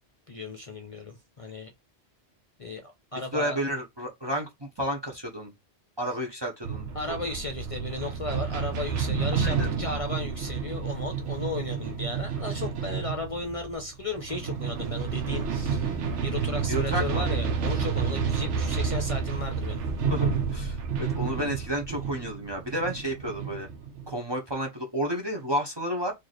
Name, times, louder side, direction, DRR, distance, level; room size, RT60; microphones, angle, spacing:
voice 1, 0.3-1.7 2.6-3.6 6.9-19.9, left 2 dB, 35° left, 0.6 m, -35 dB
voice 2, 3.3-5.5 6.0-6.9 9.4-10.1 16.7-17.3 20.1-23.7 24.1-26.1, equal, 25° right, 0.7 m, -31 dB
sound 1, 6.6-24.1, right 6 dB, 90° right, 1.0 m, -30 dB
3.2 x 2.6 x 4.0 m
omnidirectional pair, 1.2 m